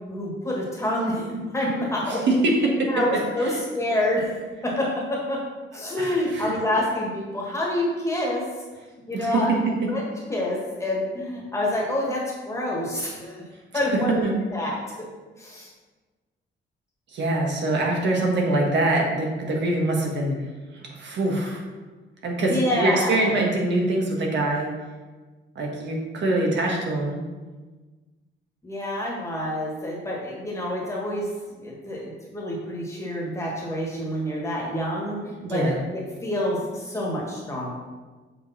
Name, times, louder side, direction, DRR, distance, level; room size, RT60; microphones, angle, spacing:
voice 1, 0.1-2.5 2.9-4.4 4.6-5.4 5.7-8.5 9.1-9.6 9.9-13.4 13.7-14.2 14.5-14.8 15.4-15.7 22.5-23.3 28.6-31.3 31.6-37.7, left 1 dB, 15° left, -3 dB, 1.6 m, -27 dB
voice 2, 2.1-2.9 3.4-3.5 6.0-6.6 9.1-9.4 14.2-14.3 17.1-20.4 21.0-21.6 22.2-24.7 25.5-27.2 35.4-35.8, right 2 dB, 60° right, -1 dB, 1.4 m, -24 dB
7.9 x 5.1 x 4.2 m, 1.3 s
wide cardioid pair, 165°, 21 cm